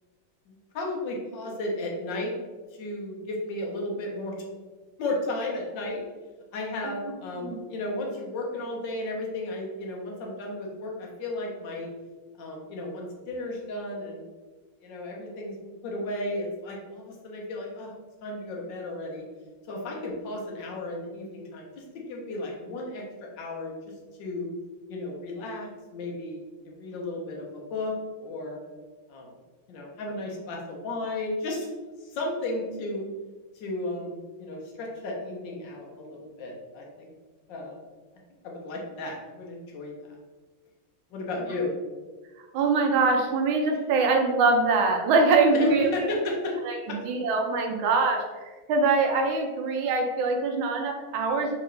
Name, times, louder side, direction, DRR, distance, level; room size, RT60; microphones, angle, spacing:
voice 1, 0.5-2.3 2.8-4.3 5.0-6.0 6.5-11.9 12.4-14.3 14.8-15.6 15.8-17.9 18.2-19.2 19.7-23.0 23.4-23.7 24.2-24.5 24.9-27.9 28.2-28.6 29.1-29.3 29.7-31.7 32.0-33.1 33.5-37.1 37.5-37.8 38.4-39.9 41.1-41.7 45.5-46.6 46.9-47.0, left 2 dB, 65° left, -1 dB, 1.4 m, -34 dB
voice 2, 42.5-45.9 46.6-48.2 48.7-51.6, right 3 dB, 80° right, 3 dB, 1.5 m, -23 dB
3.8 x 3.5 x 3.1 m, 1.3 s
omnidirectional pair, 2.2 m